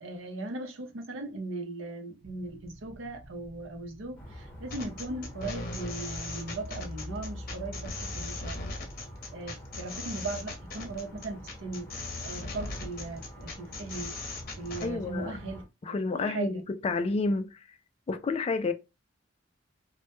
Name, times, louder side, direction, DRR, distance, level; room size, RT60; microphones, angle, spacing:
voice 1, 0.0-8.6 9.3-14.1 14.6-16.6, right 2 dB, 75° right, 0.6 m, -38 dB
sound 1, 2.2-6.9, right 1 dB, 30° right, 0.6 m, -54 dB
sound 2, 4.2-15.7, left 1 dB, 10° left, 0.9 m, -44 dB
sound 3, 4.7-14.9, left 2 dB, 50° left, 0.7 m, -39 dB
voice 2, 14.8-15.3 15.8-16.5 16.8-17.6 18.1-18.7, left 3 dB, 30° left, 0.3 m, -29 dB
2.1 x 2.1 x 2.9 m
head